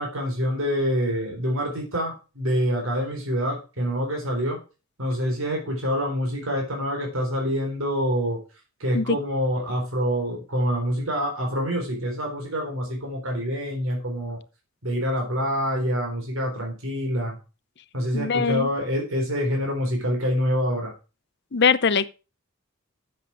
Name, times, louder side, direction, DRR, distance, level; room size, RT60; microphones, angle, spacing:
voice 1, 0.0-4.6 5.0-8.4 8.8-14.4 14.8-17.4 17.9-20.9, equal, 75° right, 4.0 m, -26 dB
voice 2, 18.1-18.7 21.5-22.1, left 5 dB, 55° left, 0.6 m, -21 dB
7.8 x 7.4 x 6.1 m
head